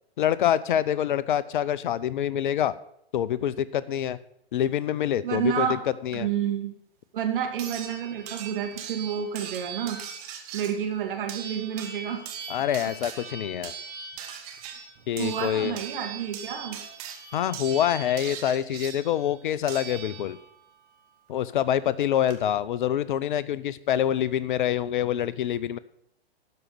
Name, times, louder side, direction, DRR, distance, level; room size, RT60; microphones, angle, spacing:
voice 1, 0.2-2.7 3.1-4.2 4.5-6.3 12.5-13.7 15.1-15.8 17.3-20.4 21.3-25.8, left 10 dB, 55° left, 17 dB, 0.6 m, -26 dB
voice 2, 5.2-5.7 6.1-6.7 7.1-10.0 10.5-12.3 15.2-16.8, right 8 dB, 55° right, 3 dB, 2.4 m, -29 dB
sound 1, 6.1-6.2 7.6-20.6 21.8-21.9 22.3-22.4, right 7 dB, 40° right, 1.7 m, -40 dB
12.5 x 5.2 x 6.9 m, 0.72 s
figure-of-eight pair, 115°, 31 cm